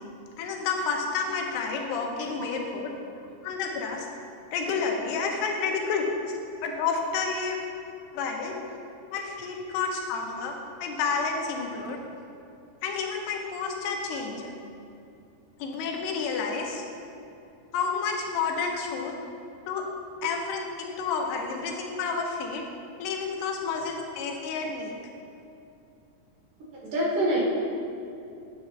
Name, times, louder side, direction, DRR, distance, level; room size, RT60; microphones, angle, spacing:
voice 1, 0.4-2.9 3.4-4.1 4.5-6.0 6.6-7.6 8.1-8.6 9.1-12.0 12.8-14.5 15.6-16.8 17.7-19.1 19.7-19.9 20.2-22.6 23.0-24.9, left 5 dB, 90° left, 1 dB, 2.8 m, -30 dB
voice 2, 26.9-27.4, right 1 dB, 60° right, -5 dB, 2.8 m, -25 dB
9.2 x 8.1 x 2.4 m, 2.7 s
omnidirectional pair, 4.5 m